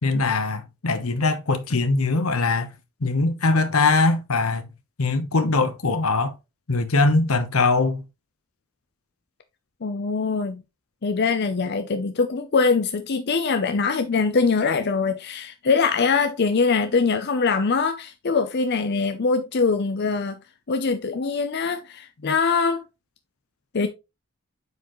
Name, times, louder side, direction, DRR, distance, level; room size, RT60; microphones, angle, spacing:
voice 1, 0.0-2.7 3.0-4.6 5.0-6.3 6.7-8.0, left 3 dB, 85° left, 1.1 m, -21 dB
voice 2, 9.8-10.6 11.0-20.4 20.7-22.8 23.7-23.9, left 4 dB, 50° left, 0.6 m, -23 dB
8.0 x 4.7 x 3.1 m
head